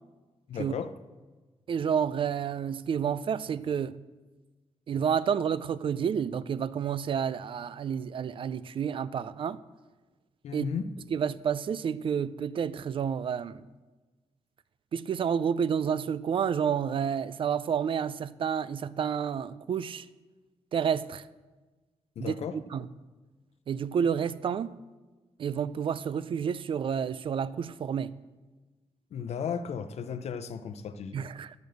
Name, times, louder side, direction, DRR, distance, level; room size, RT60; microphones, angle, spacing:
voice 1, 0.5-0.9 10.4-10.9 22.2-22.5 29.1-31.2, left 7 dB, 75° left, 0.6 m, -34 dB
voice 2, 1.7-4.0 4.9-9.6 10.5-10.7 11.1-13.6 14.9-20.1 20.7-21.2 22.2-22.9 23.7-24.8 25.4-28.1 31.1-31.5, right 7 dB, 50° right, 0.3 m, -30 dB
11.0 x 5.2 x 7.7 m
wide cardioid pair, 140°, 11 cm